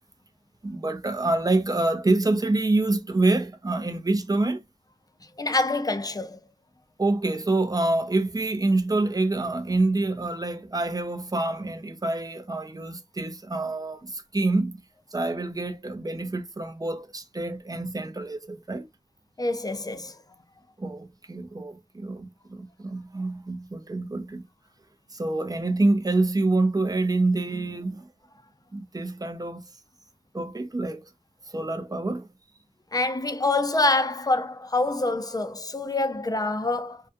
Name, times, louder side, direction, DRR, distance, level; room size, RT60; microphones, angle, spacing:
voice 1, 0.6-4.6 7.0-14.8 15.1-18.9 20.8-24.5 25.1-28.0 28.7-29.6 30.3-31.1 31.5-32.3, right 2 dB, 25° right, 0.5 m, -26 dB
voice 2, 5.4-6.4 19.4-20.2 32.9-37.0, left 2 dB, 25° left, 0.4 m, -26 dB
2.4 x 2.2 x 2.5 m
wide cardioid pair, 45°, 14 cm